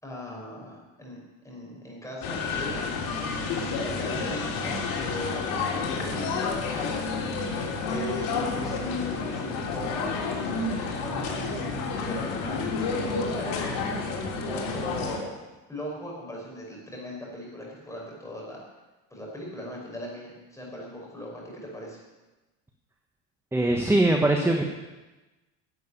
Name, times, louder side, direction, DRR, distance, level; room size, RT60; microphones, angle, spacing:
voice 1, 0.0-2.8 3.5-7.2 7.8-11.6 12.0-12.6 13.1-14.1 14.5-15.3 15.7-18.6 19.1-22.0, left 1 dB, 10° left, -3 dB, 5.8 m, -39 dB
sound 1, 2.2-15.2, left 4 dB, 70° left, 3.2 m, -30 dB
voice 2, 23.5-24.6, right 2 dB, 5° right, 3 dB, 1.2 m, -21 dB
12.0 x 8.0 x 9.9 m, 1.1 s
cardioid pair, 125°, 36 cm